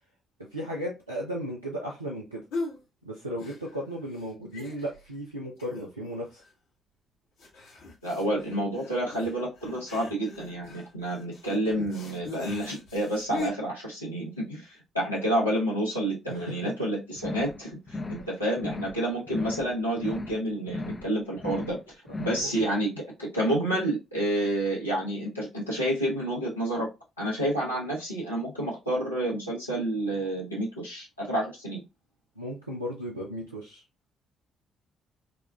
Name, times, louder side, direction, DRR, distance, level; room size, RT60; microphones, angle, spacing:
voice 1, 0.5-2.4 3.0-6.4 16.3-16.9 22.4-22.5 32.4-33.8, equal, 90° right, 0.5 m, -35 dB
sound 1, 2.5-2.8 3.4-3.9 4.2-4.3 4.5-5.1 5.6-6.1 6.4-6.5 7.4-13.5, left 2 dB, 70° left, 1.1 m, -39 dB
voice 2, 8.0-26.9 27.2-31.8, right 1 dB, 85° left, 1.0 m, -29 dB
sound 2, 17.2-17.6 17.9-18.3 18.6-19.0 19.3-19.7 20.0-20.4 20.7-21.1 21.4-21.8 22.1-22.5, left 2 dB, 30° left, 0.6 m, -36 dB
4.8 x 2.3 x 2.3 m
figure-of-eight pair, 40°, 0 cm